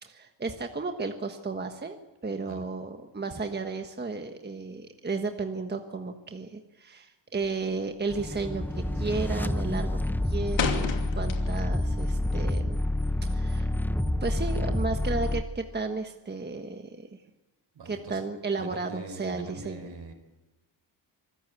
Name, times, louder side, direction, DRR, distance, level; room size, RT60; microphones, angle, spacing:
voice 1, 0.0-2.0 2.2-10.0 10.2-12.8 13.2-13.7 14.2-17.1 17.8-19.9, right 3 dB, 20° right, 5 dB, 1.4 m, -33 dB
sound 1, 7.3-7.7 8.0-8.4 8.7-9.2 9.5-11.8 12.1-13.6, left 6 dB, 85° left, 2.8 m, -33 dB
sound 2, 8.1-15.4, left 1 dB, 5° left, 0.7 m, -28 dB
voice 2, 17.7-18.2 18.6-20.1, right 3 dB, 65° right, 8 dB, 4.7 m, -42 dB
25.5 x 14.5 x 8.4 m, 1.1 s
cardioid pair, 120°, 45 cm